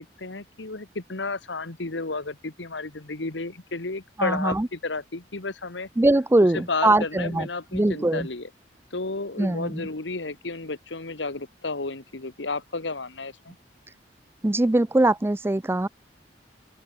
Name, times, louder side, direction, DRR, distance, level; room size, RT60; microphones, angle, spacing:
voice 1, 0.0-5.9 6.5-8.5 8.9-13.6, left 3 dB, 80° left, 1.7 m, -32 dB
voice 2, 4.2-4.7 6.0-7.5 7.7-8.3 9.4-9.9 14.4-15.9, right 2 dB, 15° right, 0.4 m, -22 dB
open air
head